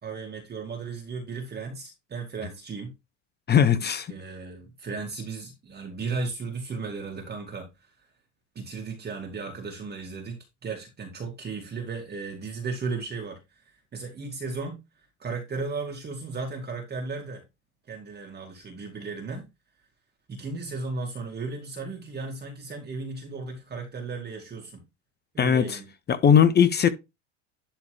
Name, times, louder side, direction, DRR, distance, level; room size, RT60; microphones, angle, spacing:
voice 1, 0.0-2.9 4.1-7.7 8.0-8.1 8.6-14.8 15.2-17.4 17.9-19.5 20.3-24.8 25.3-25.9 26.3-26.4, right 4 dB, 25° right, 2.1 m, -35 dB
voice 2, 3.5-4.1 25.4-25.7 26.1-26.9, left 8 dB, 25° left, 0.9 m, -19 dB
11.5 x 3.8 x 3.4 m
supercardioid pair, 105°, 38 cm